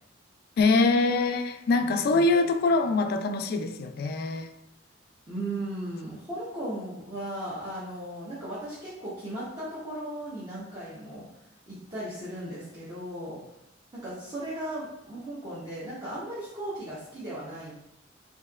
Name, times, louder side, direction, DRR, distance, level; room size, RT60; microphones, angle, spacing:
voice 1, 0.6-4.5, left 3 dB, 55° left, 0.3 m, -24 dB
voice 2, 1.8-2.3 5.3-11.2 11.7-13.4 13.9-17.7, right 1 dB, 20° right, 0.9 m, -37 dB
4.2 x 2.7 x 2.3 m
head